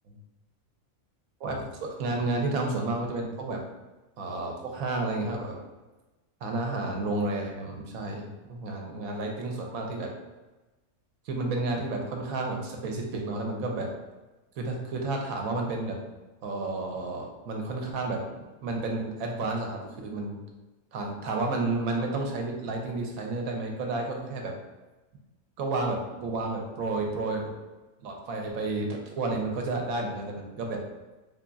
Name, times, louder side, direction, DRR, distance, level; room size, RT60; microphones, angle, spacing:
voice 1, 1.4-3.6 4.2-5.6 6.4-10.1 11.2-13.9 14.6-16.0 16.4-18.2 18.6-20.4 20.9-24.5 25.6-27.5 28.0-30.8, right 2 dB, 80° right, 2 dB, 1.1 m, -31 dB
3.4 x 2.3 x 3.8 m, 1.1 s
omnidirectional pair, 1.5 m